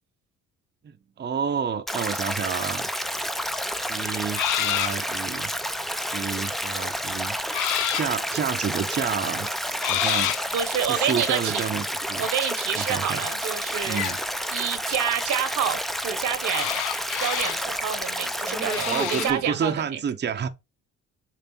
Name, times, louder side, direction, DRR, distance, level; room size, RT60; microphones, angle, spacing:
voice 1, 1.2-2.9 3.9-5.5 6.1-7.4 7.9-9.5 9.9-10.3 10.9-12.3 12.7-13.3 13.8-14.2 18.8-20.5, right 7 dB, 35° right, 0.7 m, -29 dB
Stream, 1.9-19.3, equal, ahead, 0.5 m, -30 dB
sound 1, 3.1-3.2 3.5-5.1 5.6-5.9 6.3-7.0 7.5-8.2 9.0-9.1 9.3-9.4 9.8-10.5 10.9-11.2 13.9-14.2 16.5-17.7 18.7-19.4, left 14 dB, 80° left, 0.5 m, -28 dB
voice 2, 10.5-11.6 12.2-14.2 14.5-16.8 17.2-20.0, right 8 dB, 80° right, 1.2 m, -28 dB
6.9 x 3.3 x 4.3 m
cardioid pair, 90°, 30 cm